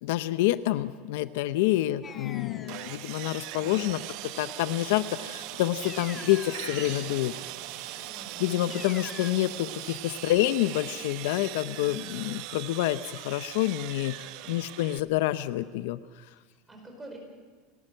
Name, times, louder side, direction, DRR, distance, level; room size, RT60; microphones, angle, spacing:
voice 1, 0.0-4.0 4.4-7.3 8.4-16.0, left 15 dB, 75° left, 13 dB, 0.7 m, -28 dB
sound 1, 2.0-2.9 5.8-7.1 8.7-9.3, left 6 dB, 25° left, 1.2 m, -44 dB
Sawing, 2.7-15.0, right 16 dB, 55° right, 0.7 m, -40 dB
voice 2, 3.6-4.2 8.0-8.5 11.7-12.0 14.4-14.9 16.4-17.2, right 2 dB, 10° right, 2 dB, 5.0 m, -48 dB
sound 2, 4.4-9.6, right 5 dB, 85° right, 7.1 m, -47 dB
29.5 x 12.0 x 7.9 m, 1.4 s
supercardioid pair, 160°, 0 cm